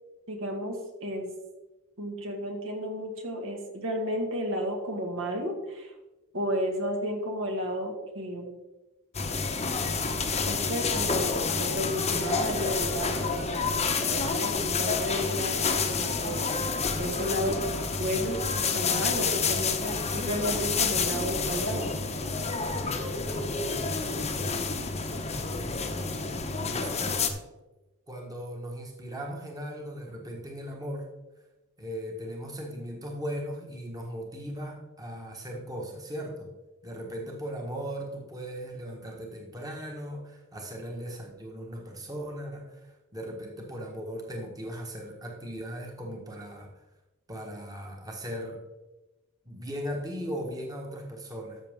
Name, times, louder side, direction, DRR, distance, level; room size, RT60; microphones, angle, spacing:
voice 1, 0.3-1.3 2.0-5.9 6.3-8.6 10.4-16.5 17.0-17.6 18.0-21.9, equal, 65° right, 2 dB, 2.0 m, -32 dB
sound 1, 9.1-27.3, left 4 dB, 30° left, 1.0 m, -29 dB
voice 2, 22.9-24.8 25.5-26.1 26.7-27.3 28.1-31.1 31.8-36.5 36.8-46.7 47.3-48.6 49.4-51.6, equal, 15° right, 0 dB, 1.5 m, -38 dB
13.5 x 6.5 x 3.7 m, 1.1 s
head